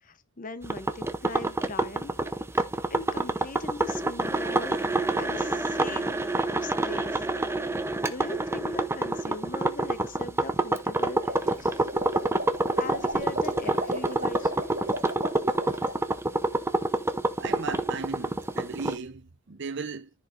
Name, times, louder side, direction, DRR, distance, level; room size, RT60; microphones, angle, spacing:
voice 1, 0.0-2.1 2.9-4.8 5.2-6.1 6.6-7.3 7.7-11.9 12.8-14.7, left 2 dB, 35° left, 0.8 m, -40 dB
sound 1, 0.6-18.9, right 2 dB, 10° right, 0.6 m, -27 dB
sound 2, 11.2-16.0, equal, 35° right, 2.7 m, -36 dB
voice 2, 17.4-20.1, right 4 dB, 50° right, 0.7 m, -36 dB
14.0 x 4.8 x 2.5 m
head